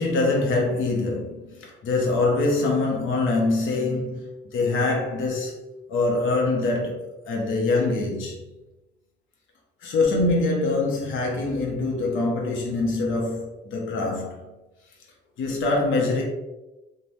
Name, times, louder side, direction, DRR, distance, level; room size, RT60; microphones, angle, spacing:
voice 1, 0.0-5.6 5.9-8.4 9.8-14.5 15.4-16.2, left 3 dB, 80° left, 0.8 m, -24 dB
3.1 x 2.2 x 2.6 m
cardioid pair, 90°, 20 cm